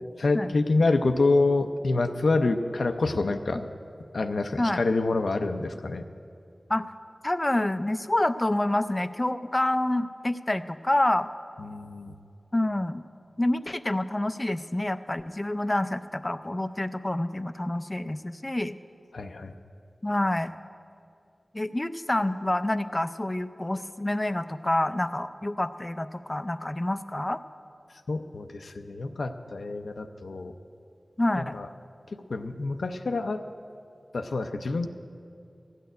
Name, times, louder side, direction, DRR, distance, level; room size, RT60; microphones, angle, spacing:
voice 1, 0.2-3.6 4.1-6.0 11.6-12.1 19.1-19.6 28.1-30.5 31.4-31.7 32.1-33.5 34.1-34.9, left 3 dB, 85° left, 6 dB, 0.5 m, -27 dB
voice 2, 7.2-11.3 12.5-13.0 13.4-18.8 20.0-20.5 21.5-27.4 31.2-31.6, left 1 dB, 25° left, 12 dB, 0.5 m, -27 dB
14.5 x 6.7 x 9.3 m, 2.5 s
wide cardioid pair, 70°, 0 cm